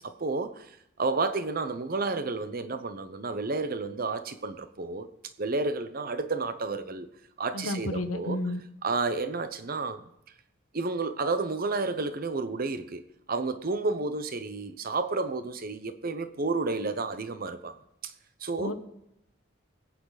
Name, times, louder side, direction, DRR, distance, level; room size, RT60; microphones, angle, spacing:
voice 1, 0.0-5.1 5.4-7.1 7.4-8.4 8.8-10.0 10.7-13.0 13.3-17.8 18.0-18.1 18.4-18.7, right 3 dB, 45° right, 0.9 m, -31 dB
voice 2, 7.5-8.6 18.6-18.7, left 2 dB, 85° left, 1.2 m, -31 dB
20.5 x 8.8 x 4.1 m
head